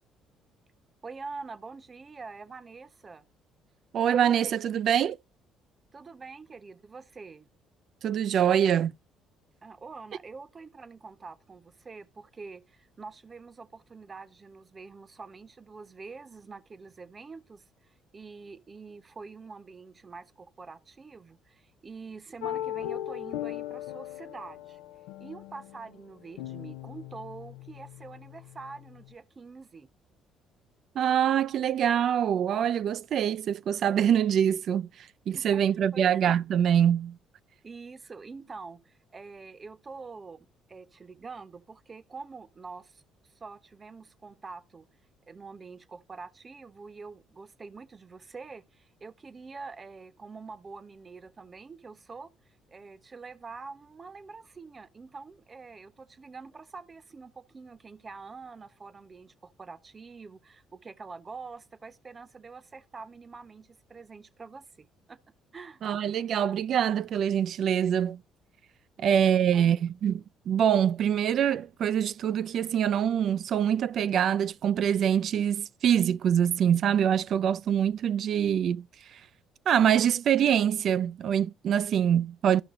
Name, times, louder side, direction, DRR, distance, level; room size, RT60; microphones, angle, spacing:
voice 1, 1.0-3.2 5.9-7.5 9.6-24.8 25.2-29.9 35.3-35.6 35.9-36.4 37.6-44.9 45.3-65.2 65.5-65.8 69.0-69.2 69.5-69.7, right 4 dB, 35° right, 0.8 m, -45 dB
voice 2, 3.9-5.2 8.0-8.9 31.0-37.2 65.8-68.2 69.0-78.8 79.1-79.2 79.7-82.6, right 9 dB, 60° right, 0.3 m, -25 dB
sound 1, 22.4-29.1, left 12 dB, 90° left, 0.4 m, -39 dB
14.0 x 5.7 x 2.5 m
supercardioid pair, 65°, 0 cm